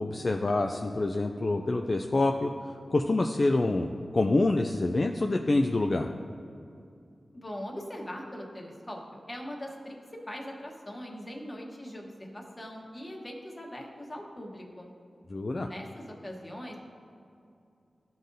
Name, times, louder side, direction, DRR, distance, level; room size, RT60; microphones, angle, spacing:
voice 1, 0.0-6.1 15.3-15.7, left 2 dB, 50° left, 4 dB, 0.3 m, -27 dB
voice 2, 7.3-10.0 10.3-14.9 15.6-16.8, equal, 30° left, 0 dB, 1.2 m, -41 dB
11.5 x 3.9 x 2.6 m, 2.5 s
cardioid pair, 45°, 0 cm